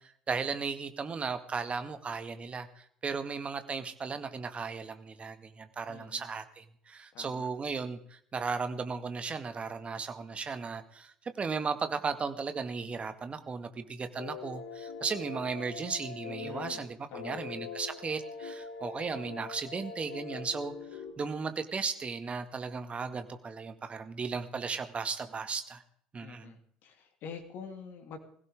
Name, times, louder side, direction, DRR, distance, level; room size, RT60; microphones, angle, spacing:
voice 1, 0.0-25.8 26.1-26.5, right 5 dB, 30° right, 9 dB, 1.9 m, -36 dB
voice 2, 5.9-6.3 7.1-7.5 16.4-17.4 26.2-28.2, left 6 dB, 55° left, 5 dB, 3.0 m, -47 dB
sound 1, 14.2-16.8 17.1-21.1, left 5 dB, 70° left, 3.2 m, -43 dB
21.5 x 16.0 x 3.7 m, 0.62 s
figure-of-eight pair, 60°, 4 cm